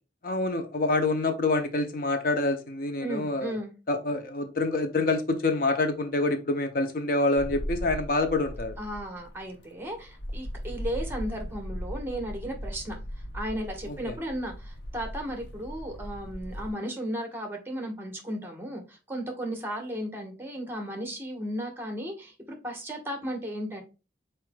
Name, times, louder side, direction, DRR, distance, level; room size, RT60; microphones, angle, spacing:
voice 1, 0.2-3.6 3.9-8.8 13.9-14.2, left 2 dB, 50° left, 7 dB, 0.7 m, -27 dB
voice 2, 3.0-3.7 8.8-13.0 13.3-23.8, equal, 15° right, 3 dB, 1.2 m, -35 dB
sound 1, 7.4-16.7, equal, 90° left, 0.8 m, -38 dB
4.8 x 4.4 x 2.2 m, 0.30 s
head